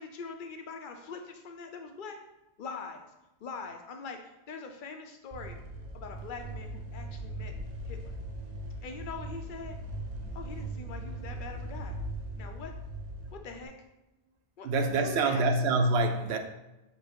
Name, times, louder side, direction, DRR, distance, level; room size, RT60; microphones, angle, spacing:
voice 1, 0.0-2.2 2.6-3.0 3.4-5.6 5.9-7.5 7.9-8.1 8.8-9.8 10.3-12.0 12.3-12.7 13.4-13.7 14.6-14.7 15.0-15.4, left 4 dB, 55° left, 4 dB, 0.7 m, -42 dB
sound 1, 5.3-13.7, right 1 dB, 45° right, 0.7 m, -39 dB
voice 2, 14.6-16.4, right 2 dB, 80° right, 5 dB, 0.8 m, -26 dB
5.2 x 2.0 x 4.5 m, 0.98 s
omnidirectional pair, 1.1 m